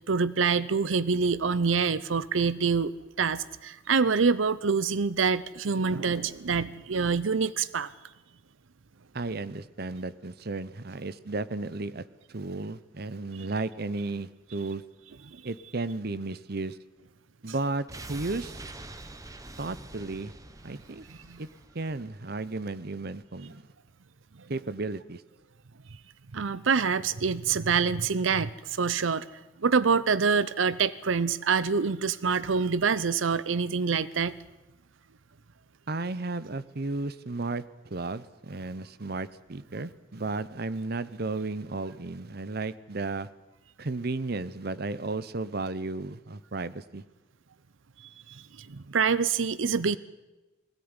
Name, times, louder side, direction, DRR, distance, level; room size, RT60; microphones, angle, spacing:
voice 1, 0.1-7.9 15.3-15.4 21.1-21.4 26.3-29.3 29.6-34.4 48.0-50.0, right 5 dB, 85° right, 17 dB, 0.7 m, -26 dB
voice 2, 9.1-12.0 12.3-14.8 15.4-16.8 17.4-18.6 19.6-20.3 20.6-21.0 21.4-21.5 21.7-23.6 24.5-25.2 35.9-37.6 37.9-43.3 43.8-47.0, right 3 dB, 55° right, 16 dB, 0.9 m, -34 dB
sound 1, 17.9-22.8 23.1-23.2, right 2 dB, 20° right, 1.2 m, -45 dB
21.0 x 17.0 x 9.8 m, 1.1 s
head